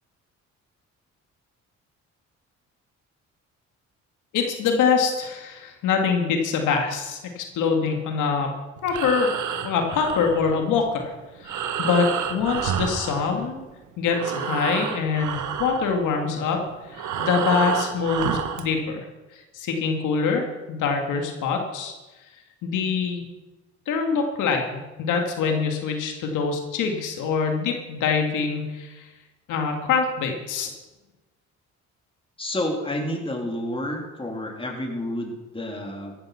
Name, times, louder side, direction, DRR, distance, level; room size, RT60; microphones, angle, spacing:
voice 1, 4.3-8.5 8.8-9.3 9.6-11.0 11.4-13.6 14.0-19.1 19.3-21.9 22.6-23.2 23.9-24.7 25.0-29.1 29.5-30.7, left 5 dB, 90° left, 3 dB, 2.2 m, -24 dB
Breathing, 8.8-13.8 14.0-18.7, right 7 dB, 75° right, 1.5 m, -30 dB
voice 2, 32.4-36.2, left 1 dB, 20° left, 1 dB, 3.6 m, -30 dB
15.0 x 12.0 x 5.9 m, 1.1 s
cardioid pair, 90°, 30 cm